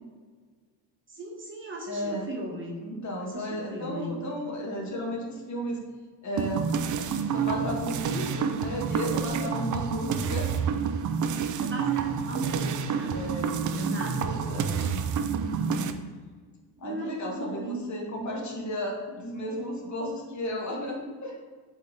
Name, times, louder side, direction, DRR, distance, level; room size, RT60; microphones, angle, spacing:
voice 1, 1.1-2.8 3.2-4.2 11.4-13.2 13.7-14.5 16.8-17.8, right 1 dB, 25° right, 0 dB, 1.1 m, -37 dB
voice 2, 1.9-2.2 2.8-5.8 6.2-6.6 7.3-10.5 10.7-10.9 13.1-15.0 15.3-15.9 16.8-21.4, equal, 40° left, -1 dB, 1.5 m, -34 dB
Some Drums, 6.4-15.9, right 6 dB, 45° right, 0.5 m, -29 dB
8.2 x 3.6 x 3.8 m, 1.5 s
cardioid pair, 125°, 44 cm